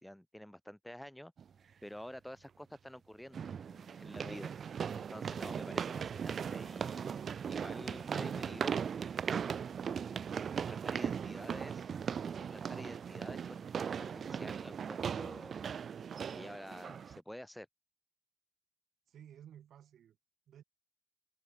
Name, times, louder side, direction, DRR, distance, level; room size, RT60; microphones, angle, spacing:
voice 1, 0.0-1.3 1.8-4.5 4.9-7.2 7.5-8.9 10.5-11.9 12.3-15.7 16.3-17.7, equal, 5° left, 3.4 m, -49 dB
sound 1, 1.4-1.5 3.3-17.2, right 7 dB, 50° right, 0.5 m, -38 dB
voice 2, 10.6-11.2 19.1-20.2 20.5-20.6, right 10 dB, 65° right, 3.7 m, -56 dB
cardioid pair, 90°, 0 cm